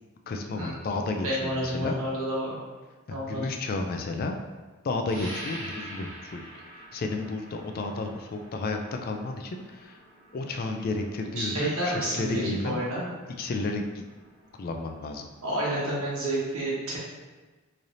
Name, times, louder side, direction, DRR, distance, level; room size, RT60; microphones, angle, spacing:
voice 1, 0.3-2.0 3.1-4.4 4.8-6.4 6.9-10.0 10.3-12.8 13.4-14.0 14.6-15.3, left 3 dB, 45° left, 4 dB, 0.4 m, -32 dB
voice 2, 1.2-2.5 3.1-3.4 11.4-13.1 15.4-17.0, right 1 dB, 85° right, -6 dB, 1.3 m, -29 dB
sound 1, 5.1-15.4, right 1 dB, 65° right, 1.0 m, -46 dB
3.8 x 3.3 x 2.7 m, 1.3 s
head